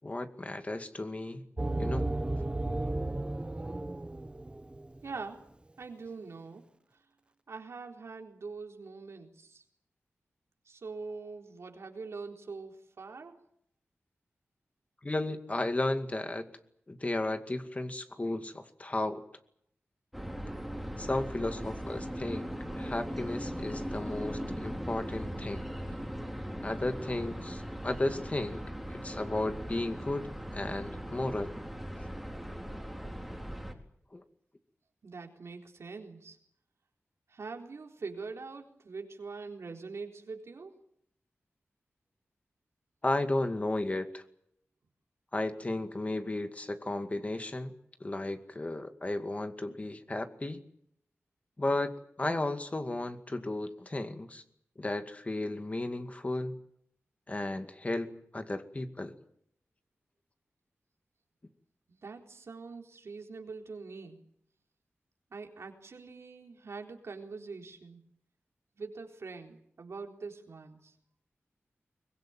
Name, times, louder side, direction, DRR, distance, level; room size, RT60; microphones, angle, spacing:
voice 1, 0.0-1.5 1.8-2.1 15.0-16.5 16.9-19.2 21.0-25.6 26.6-28.6 28.9-31.5 34.1-34.2 43.0-44.2 45.3-47.7 48.0-50.6 51.6-51.9 52.2-54.4 54.8-56.6 57.3-59.2, left 2 dB, 30° left, 8 dB, 2.2 m, -34 dB
sound 1, 1.6-5.0, right 2 dB, 20° right, 1.1 m, -34 dB
voice 2, 5.0-5.4 5.8-6.7 7.5-9.6 10.7-13.4 35.0-36.4 37.3-40.8 62.0-64.2 65.3-68.0 68.8-70.9, right 4 dB, 75° right, 3 dB, 4.1 m, -43 dB
sound 2, 20.1-33.7, equal, ahead, 3.8 m, -39 dB
23.5 x 21.5 x 9.1 m, 0.70 s
wide cardioid pair, 85°, 5 cm